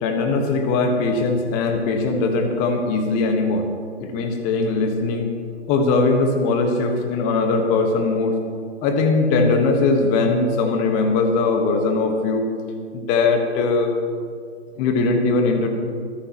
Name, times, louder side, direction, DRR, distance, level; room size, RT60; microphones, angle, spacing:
voice 1, 0.0-3.7 4.0-5.3 5.7-8.3 8.8-12.4 12.9-13.9 14.8-15.7, left 3 dB, 20° left, 5 dB, 1.4 m, -20 dB
26.0 x 13.0 x 3.0 m, 2.2 s
figure-of-eight pair, 135°, 35 cm